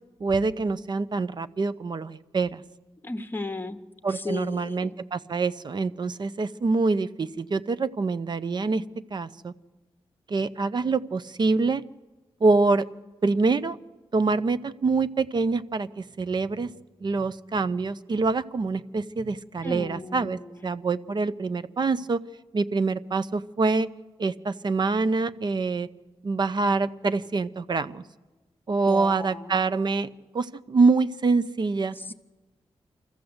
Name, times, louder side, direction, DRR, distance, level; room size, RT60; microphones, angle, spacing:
voice 1, 0.2-2.6 4.0-8.8 9.1-9.5 10.3-11.8 12.4-12.9 13.2-13.8 14.1-16.7 17.0-22.2 22.5-23.9 24.2-25.9 26.2-28.0 28.7-30.1 30.3-32.1, right 3 dB, 45° right, 14 dB, 0.6 m, -25 dB
voice 2, 3.0-3.8 4.1-4.9 19.6-20.7 28.9-29.5 31.9-32.1, left 2 dB, 20° left, 9 dB, 1.0 m, -35 dB
25.0 x 14.5 x 7.9 m, 1.2 s
wide cardioid pair, 110°, 10 cm